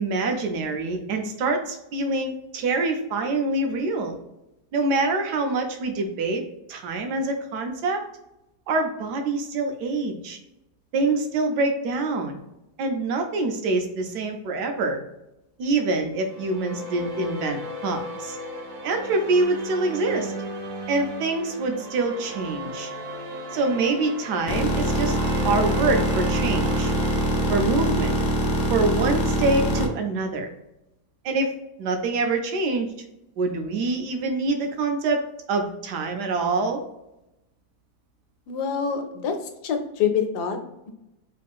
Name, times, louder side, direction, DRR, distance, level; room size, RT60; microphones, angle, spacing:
voice 1, 0.0-4.2 4.7-6.4 6.7-8.0 8.7-10.4 10.9-12.4 12.8-15.0 15.6-18.4 18.8-20.3 20.9-22.9 23.5-25.2 25.4-26.9 27.5-28.2 28.7-30.5 31.2-31.5 31.8-32.9 33.4-35.2 35.5-36.8, right 3 dB, 80° right, 4 dB, 1.2 m, -25 dB
sound 1, 16.2-28.6, right 1 dB, 60° right, 1.0 m, -36 dB
sound 2, 24.5-29.9, equal, 60° left, 0.5 m, -24 dB
voice 2, 38.5-39.4 39.6-40.6, left 7 dB, 80° left, 6 dB, 1.2 m, -25 dB
3.4 x 2.4 x 3.5 m, 0.90 s
omnidirectional pair, 1.8 m